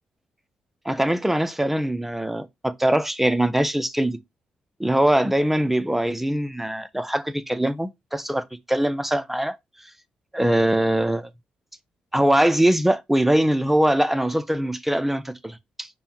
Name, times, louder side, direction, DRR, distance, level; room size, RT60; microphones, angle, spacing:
voice 1, 0.9-4.2 4.8-9.6 10.3-11.3 12.1-15.9, right 1 dB, 5° right, 0.5 m, -22 dB
5.3 x 2.2 x 4.3 m
hypercardioid pair, 45°, 4 cm